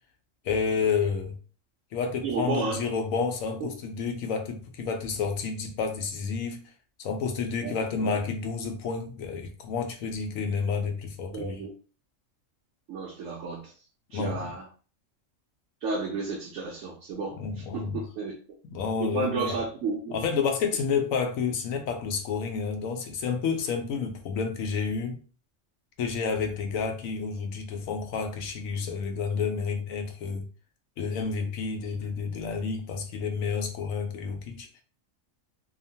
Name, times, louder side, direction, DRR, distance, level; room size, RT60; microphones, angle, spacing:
voice 1, 0.4-1.4 1.9-6.7 7.0-11.6 14.1-14.5 17.4-18.0 18.6-19.6 20.1-25.2 26.0-30.5 31.0-34.7, left 5 dB, 90° left, 1.0 m, -30 dB
voice 2, 2.2-2.8 3.6-3.7 7.6-8.2 11.3-11.7 12.9-13.7 14.1-14.6 15.8-18.3 19.0-20.1, right 4 dB, 75° right, 1.0 m, -32 dB
2.8 x 2.1 x 2.6 m
omnidirectional pair, 1.4 m